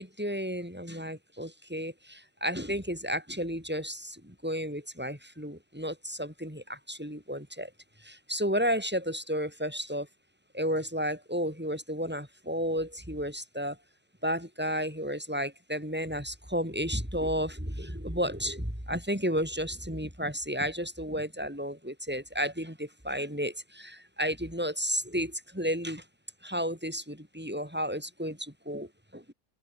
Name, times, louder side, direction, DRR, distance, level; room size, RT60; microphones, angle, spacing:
voice 1, 0.0-7.7 8.0-10.1 10.5-13.8 14.2-26.0 26.4-28.9 29.1-29.3, equal, 5° right, 6.5 m, -32 dB
omnidirectional pair, 1.7 m